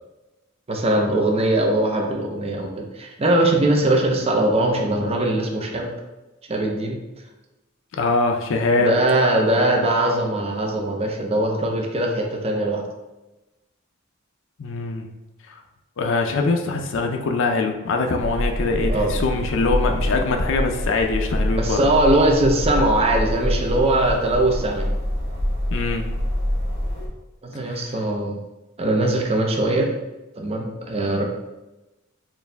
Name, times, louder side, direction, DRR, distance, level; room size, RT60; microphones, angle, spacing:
voice 1, 0.7-5.9 6.5-7.0 8.7-12.8 18.9-19.2 21.6-24.9 27.4-28.4 28.8-29.9 30.4-31.2, right 1 dB, 30° right, 1 dB, 0.5 m, -21 dB
voice 2, 8.0-8.9 14.6-15.1 16.0-21.8 25.7-26.1 27.7-27.8, left 3 dB, 60° left, 3 dB, 0.4 m, -23 dB
sound 1, 18.2-27.1, equal, 60° right, 1.3 m, -25 dB
4.5 x 2.6 x 3.3 m, 1.0 s
head